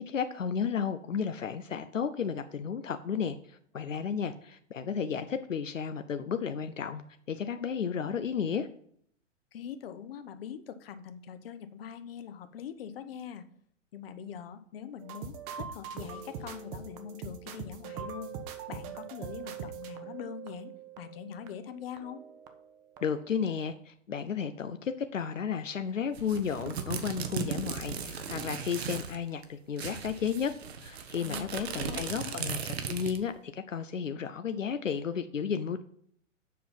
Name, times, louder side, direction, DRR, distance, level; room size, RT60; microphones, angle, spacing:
voice 1, 0.0-7.0 7.3-8.7 23.0-30.5 30.8-35.8, left 7 dB, 75° left, 9 dB, 0.7 m, -33 dB
voice 2, 9.5-13.4 13.9-18.4 18.7-22.2 31.2-32.4, left 8 dB, 50° left, 10 dB, 0.9 m, -43 dB
sound 1, 15.0-22.7 23.0-23.3, right 7 dB, 30° right, 0.9 m, -43 dB
sound 2, 26.1-29.2 29.4-29.5 29.8-33.3, right 6 dB, 55° right, 1.2 m, -37 dB
7.6 x 5.6 x 5.6 m, 0.64 s
figure-of-eight pair, 110°, 38 cm